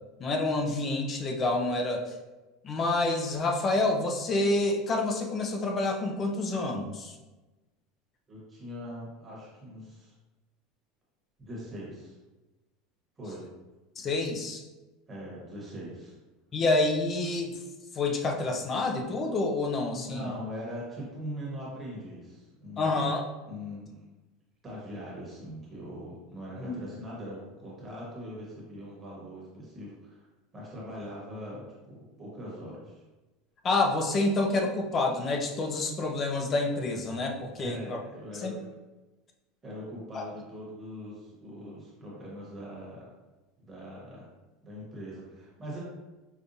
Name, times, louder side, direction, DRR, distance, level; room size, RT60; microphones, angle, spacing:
voice 1, 0.2-2.1 2.6-7.1 14.0-14.6 16.5-17.6 17.9-20.3 22.8-23.2 26.6-26.8 33.6-38.0 38.4-38.5 40.1-40.2, left 2 dB, 25° left, 3 dB, 0.4 m, -28 dB
voice 2, 8.3-10.1 11.4-12.2 13.2-13.5 15.1-16.1 19.9-23.0 23.5-24.0 24.6-30.3 30.5-33.0 37.6-38.6 39.6-43.1 43.6-44.3 44.6-45.8, equal, 15° right, -6 dB, 1.2 m, -41 dB
5.1 x 2.3 x 2.6 m, 1.1 s
supercardioid pair, 165°, 0 cm